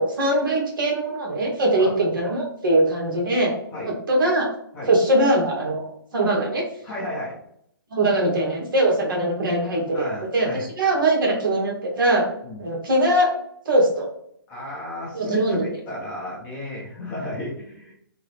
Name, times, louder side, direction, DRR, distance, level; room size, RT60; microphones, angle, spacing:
voice 1, 0.0-3.5 3.8-4.5 4.9-6.6 7.9-12.2 12.6-13.3 13.7-14.0 15.1-15.7, right 1 dB, 65° right, -1 dB, 1.1 m, -21 dB
voice 2, 6.8-7.4 9.9-10.7 12.4-12.7 14.5-17.9, left 1 dB, 10° left, -5 dB, 0.5 m, -34 dB
2.9 x 2.5 x 3.2 m, 0.68 s
hypercardioid pair, 170°, 12 cm